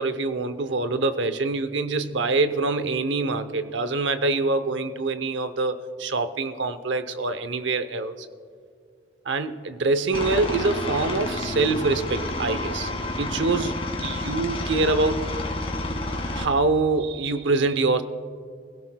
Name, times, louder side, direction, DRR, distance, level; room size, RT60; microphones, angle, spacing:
voice 1, 0.0-8.3 9.2-12.9 13.2-15.3 16.3-18.0, right 3 dB, 85° right, 11 dB, 0.7 m, -25 dB
Aircraft, 10.1-16.4, left 2 dB, 30° left, 1.8 m, -30 dB
25.5 x 17.0 x 2.3 m, 2.2 s
head